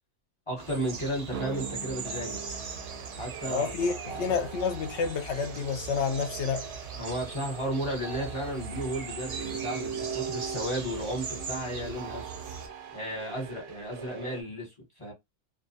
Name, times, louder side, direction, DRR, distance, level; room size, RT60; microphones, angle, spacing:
voice 1, 0.5-2.4 3.2-4.2 7.0-12.3 12.9-15.1, equal, 25° left, 0.9 m, -34 dB
sound 1, 0.6-12.7, right 5 dB, 85° right, 0.3 m, -40 dB
sound 2, 1.3-14.4, right 7 dB, 65° right, 0.7 m, -41 dB
voice 2, 3.4-6.7, left 5 dB, 65° left, 0.8 m, -29 dB
2.5 x 2.2 x 2.7 m
omnidirectional pair, 1.4 m